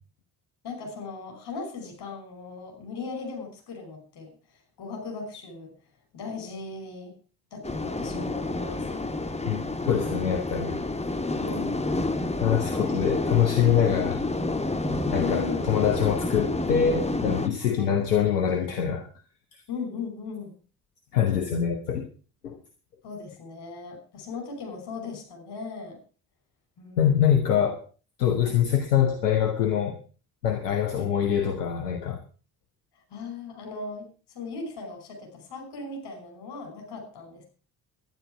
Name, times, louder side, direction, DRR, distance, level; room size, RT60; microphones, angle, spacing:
voice 1, 0.6-4.3 4.8-5.7 6.1-7.1 7.5-9.0 11.3-12.1 12.8-12.9 15.2-15.6 17.8-18.0 19.7-20.6 23.0-26.0 26.8-27.4 28.4-28.6 30.9-31.1 33.1-34.1 34.3-37.5, left 4 dB, 55° left, 4 dB, 5.7 m, -38 dB
sound 1, 7.6-17.5, left 2 dB, 15° left, 1.6 m, -29 dB
voice 2, 9.4-10.8 12.4-14.2 15.1-19.1 21.1-22.1 22.4-22.6 27.0-27.8 28.2-30.0 30.4-32.2, left 9 dB, 85° left, 5 dB, 1.2 m, -24 dB
11.5 x 10.5 x 6.2 m, 0.38 s
figure-of-eight pair, 45°, 46 cm